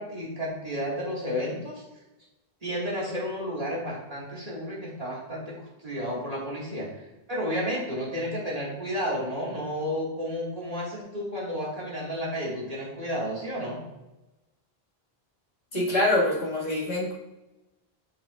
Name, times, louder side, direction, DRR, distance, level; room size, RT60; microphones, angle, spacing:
voice 1, 0.0-1.8 2.6-6.9 7.3-13.8, equal, 40° right, -6 dB, 1.9 m, -32 dB
voice 2, 15.7-17.1, left 1 dB, 45° left, -7 dB, 2.0 m, -25 dB
7.0 x 5.7 x 2.4 m, 1.0 s
omnidirectional pair, 1.0 m